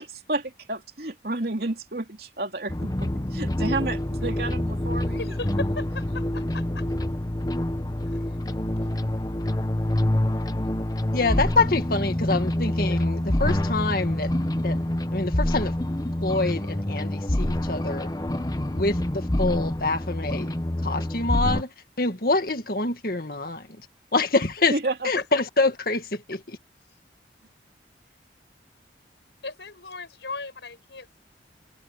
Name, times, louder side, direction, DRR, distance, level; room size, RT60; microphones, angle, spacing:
voice 1, 0.0-5.3 24.7-25.1, right 2 dB, 60° right, 3.2 m, -31 dB
sound 1, 2.7-21.6, left 1 dB, 20° left, 0.9 m, -26 dB
voice 2, 5.1-6.8 8.3-8.4 25.2-25.3 29.4-31.2, left 3 dB, 85° left, 5.3 m, -36 dB
voice 3, 11.1-14.3 14.6-14.8 15.1-15.7 16.2-18.1 18.7-20.5 20.8-23.7 24.1-24.8 25.0-26.6, left 3 dB, 55° left, 2.0 m, -26 dB
head